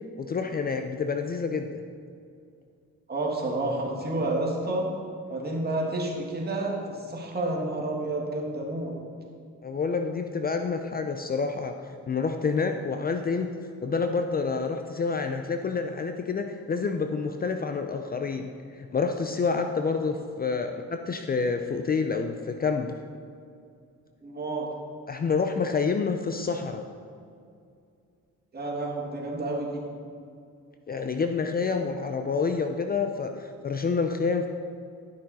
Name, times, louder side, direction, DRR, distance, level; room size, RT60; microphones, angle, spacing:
voice 1, 0.2-1.8 9.6-13.5 13.8-18.5 18.8-23.0 25.1-26.8 30.9-34.5, left 5 dB, 30° left, 6 dB, 0.5 m, -28 dB
voice 2, 3.1-4.9 5.3-8.9 24.2-24.7 28.5-29.8, right 2 dB, 30° right, -2 dB, 2.0 m, -30 dB
11.5 x 6.2 x 4.2 m, 2.3 s
cardioid pair, 90°, 30 cm